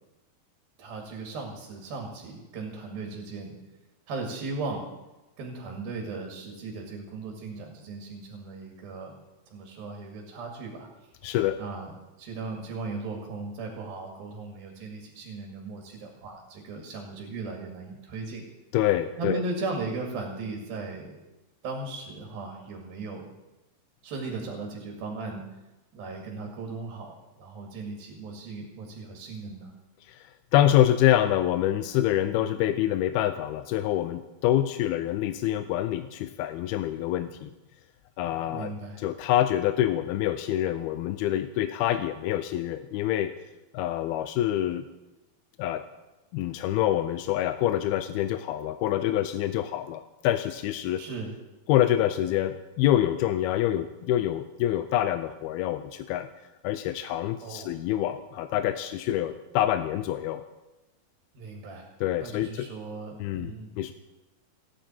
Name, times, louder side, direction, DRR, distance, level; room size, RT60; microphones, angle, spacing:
voice 1, 0.8-3.5 4.1-4.9 5.4-9.2 9.5-10.9 11.6-18.5 19.2-21.2 21.6-23.3 24.0-25.4 25.9-29.7 38.5-39.0 51.0-51.3 57.4-57.8 61.3-61.9 62.2-63.7, right 3 dB, 75° right, 1 dB, 4.0 m, -37 dB
voice 2, 11.2-11.6 18.7-19.4 30.0-37.5 38.2-38.7 39.0-43.3 43.7-44.9 45.6-45.8 46.3-51.0 51.7-56.3 56.6-60.4 62.0-62.7 63.2-63.9, left 12 dB, 85° left, 10 dB, 2.6 m, -26 dB
29.0 x 10.0 x 4.5 m, 1.0 s
omnidirectional pair, 4.3 m